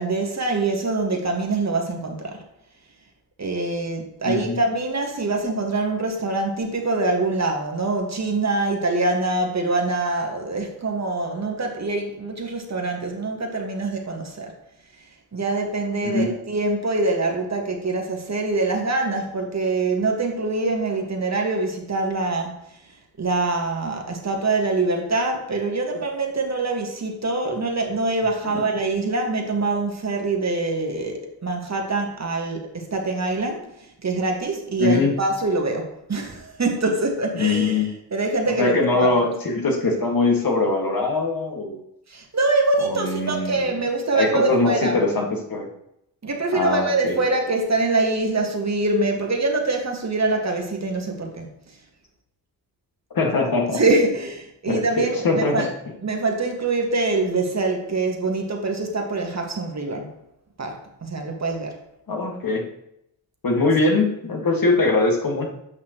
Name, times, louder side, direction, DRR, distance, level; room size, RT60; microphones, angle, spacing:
voice 1, 0.0-2.4 3.4-14.5 15.3-22.6 23.2-33.7 34.0-39.1 42.1-45.0 46.2-51.5 53.7-55.7 56.0-60.1 60.6-61.8, right 3 dB, 35° right, 2 dB, 1.7 m, -24 dB
voice 2, 4.2-4.6 16.0-16.3 28.5-28.6 34.8-35.2 37.3-37.9 38.6-41.8 42.8-43.7 44.1-45.7 46.5-47.2 53.1-53.8 54.7-55.7 62.1-62.6 63.4-65.5, left 3 dB, 45° left, 1 dB, 2.0 m, -22 dB
7.9 x 5.9 x 3.1 m, 0.79 s
hypercardioid pair, 45°, 48 cm